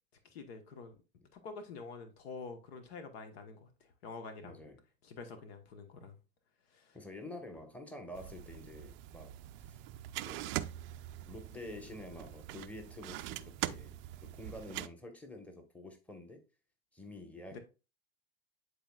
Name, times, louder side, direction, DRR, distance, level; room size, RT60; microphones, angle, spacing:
voice 1, 0.3-1.0 1.3-4.6 5.0-6.2 6.7-7.0 17.5-17.6, left 4 dB, 70° left, 1.3 m, -47 dB
voice 2, 4.4-4.8 6.9-9.8 10.2-10.6 11.2-14.0 14.3-16.4 16.9-17.6, left 1 dB, 5° left, 1.2 m, -48 dB
sound 1, 8.1-14.9, right 15 dB, 40° right, 0.4 m, -43 dB
10.0 x 4.1 x 2.3 m
hypercardioid pair, 110°, 32 cm